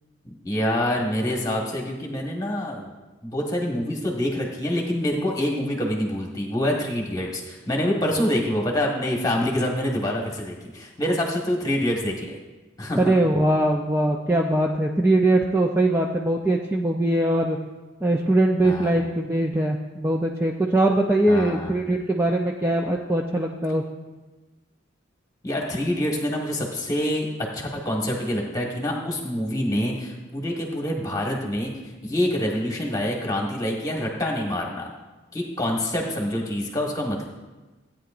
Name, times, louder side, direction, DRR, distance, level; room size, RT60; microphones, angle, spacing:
voice 1, 0.2-2.9 3.2-12.4 12.8-13.0 18.6-18.9 21.3-21.8 25.4-27.3 27.5-34.9 35.3-37.3, left 1 dB, 15° left, -1 dB, 1.3 m, -26 dB
voice 2, 12.9-17.6 18.0-23.8, right 1 dB, 10° right, 0 dB, 0.4 m, -21 dB
16.0 x 9.2 x 2.5 m, 1.2 s
head